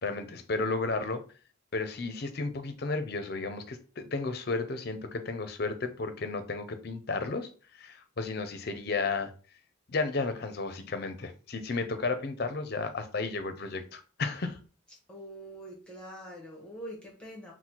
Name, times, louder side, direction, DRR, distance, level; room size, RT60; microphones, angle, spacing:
voice 1, 0.0-1.2 1.7-7.5 7.8-9.3 9.9-14.6, left 3 dB, 50° left, 10 dB, 0.5 m, -33 dB
voice 2, 15.1-17.5, right 1 dB, 5° left, -3 dB, 0.9 m, -44 dB
4.1 x 2.1 x 4.4 m, 0.37 s
head